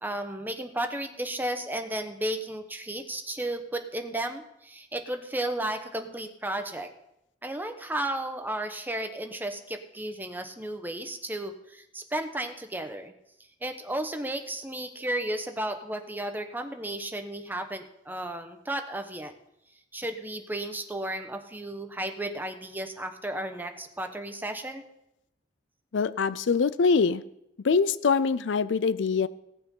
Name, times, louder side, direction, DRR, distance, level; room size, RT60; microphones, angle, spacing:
voice 1, 0.0-6.9 7.4-13.1 13.6-19.3 19.9-24.8, right 1 dB, 10° right, 6 dB, 1.0 m, -33 dB
voice 2, 25.9-27.2 27.6-29.3, left 5 dB, 75° left, 16 dB, 0.5 m, -24 dB
17.0 x 7.7 x 5.5 m, 0.83 s
head